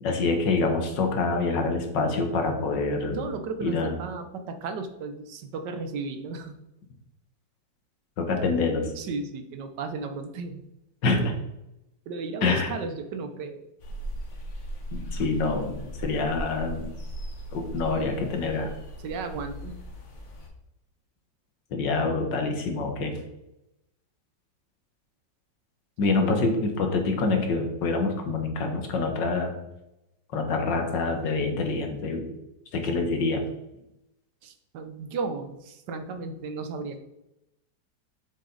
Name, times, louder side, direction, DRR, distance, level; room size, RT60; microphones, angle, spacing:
voice 1, 0.0-3.2 3.6-3.9 8.2-8.9 11.0-11.3 12.4-12.7 14.9-16.9 17.5-18.7 21.7-23.1 26.0-29.5 30.3-32.3 32.7-33.4, left 3 dB, 85° left, 4 dB, 2.0 m, -26 dB
voice 2, 3.1-6.6 9.0-10.6 12.1-13.6 19.0-19.7 26.2-26.4 34.4-37.0, right 4 dB, 75° right, 8 dB, 1.5 m, -34 dB
sound 1, 13.8-20.5, equal, 45° left, 1.4 m, -38 dB
7.3 x 6.4 x 4.0 m, 0.88 s
omnidirectional pair, 1.9 m